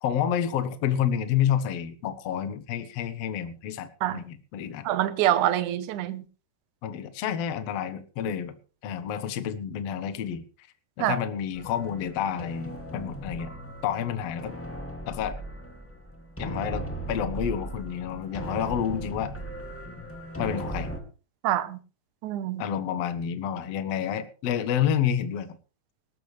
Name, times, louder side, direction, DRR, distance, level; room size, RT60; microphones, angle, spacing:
voice 1, 0.0-4.9 6.8-8.6 8.8-10.4 11.0-13.5 13.8-14.5 15.1-15.4 16.4-19.3 20.4-20.9 22.6-25.6, left 9 dB, 60° left, 1.8 m, -29 dB
voice 2, 4.8-6.2 11.0-11.2 21.4-21.8 22.2-22.6, right 12 dB, 65° right, 2.1 m, -25 dB
sound 1, 11.5-21.0, right 1 dB, 5° left, 1.4 m, -37 dB
19.0 x 13.5 x 3.3 m
omnidirectional pair, 4.4 m